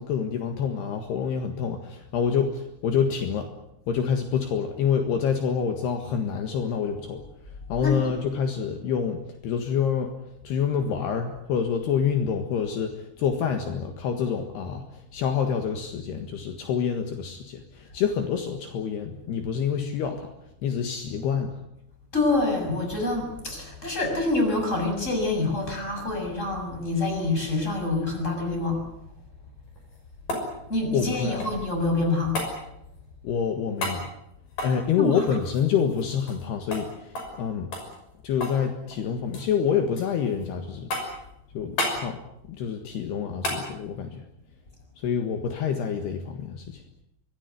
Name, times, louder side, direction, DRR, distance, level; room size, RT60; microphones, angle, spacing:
voice 1, 0.0-3.5 3.9-7.2 7.7-10.1 10.5-20.3 20.6-21.6 30.9-31.4 33.2-34.1 34.6-37.7 38.2-40.9 41.5-42.2 42.5-44.3 45.0-46.8, left 7 dB, 70° left, 5 dB, 3.6 m, -27 dB
voice 2, 22.1-28.8 30.7-32.4 35.0-35.4, left 2 dB, 15° left, 3 dB, 6.9 m, -26 dB
sound 1, 29.7-31.8 32.4-32.6 33.8-34.0 34.5-36.5 36.7-36.9 37.2-37.4 37.7-38.6 38.9-39.5 40.0-40.5 40.9-41.3 41.8-42.0 43.4-43.7 46.0-46.1, left 2 dB, 50° left, 7.5 m, -32 dB
24.5 x 19.0 x 9.4 m, 0.82 s
omnidirectional pair, 5.1 m